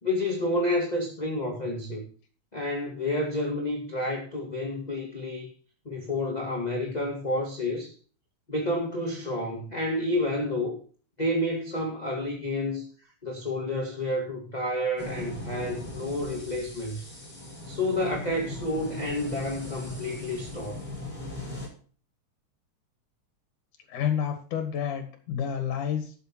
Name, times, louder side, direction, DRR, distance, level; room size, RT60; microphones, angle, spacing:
voice 1, 0.0-2.0 2.5-5.5 5.8-7.9 8.5-10.7 11.2-12.8 13.2-17.1 17.7-20.8, left 1 dB, 15° left, 1.5 m, -29 dB
sound 1, 15.0-21.7, left 2 dB, 15° right, 5.4 m, -39 dB
voice 2, 23.9-26.1, left 8 dB, 75° left, 3.2 m, -29 dB
13.0 x 8.2 x 4.5 m
omnidirectional pair, 3.6 m